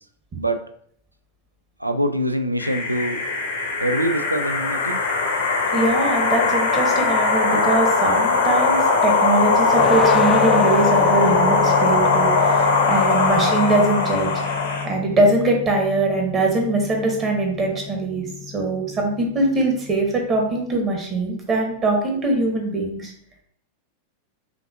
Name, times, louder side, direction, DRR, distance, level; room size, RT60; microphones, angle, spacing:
voice 1, 0.4-0.7 1.8-3.3 3.8-5.0, right 1 dB, 85° right, 8 dB, 0.3 m, -24 dB
sound 1, 2.6-14.9, left 3 dB, 60° left, 0.8 m, -20 dB
voice 2, 5.7-14.3 14.8-18.2 18.5-23.1, right 2 dB, 25° right, 1 dB, 1.2 m, -22 dB
sound 2, 9.7-20.7, left 7 dB, 20° left, 0.3 m, -30 dB
5.7 x 2.6 x 2.7 m, 0.65 s
figure-of-eight pair, 90°, 0 cm